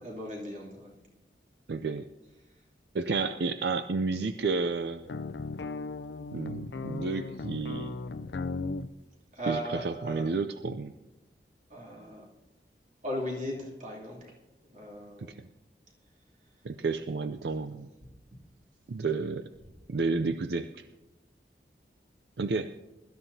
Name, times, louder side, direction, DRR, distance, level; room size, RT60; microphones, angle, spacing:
voice 1, 0.0-0.9 9.3-10.3 11.7-12.2 13.0-14.3 14.7-15.4, equal, 45° right, -2 dB, 2.9 m, -37 dB
voice 2, 1.7-2.1 2.9-5.0 6.3-8.0 9.5-10.9 15.2-15.4 16.6-17.9 18.9-19.5 19.9-20.8 22.4-22.7, right 4 dB, 75° right, 10 dB, 0.5 m, -31 dB
sound 1, 5.1-8.9, left 3 dB, 80° left, 0.5 m, -36 dB
22.5 x 13.0 x 2.8 m, 1.0 s
head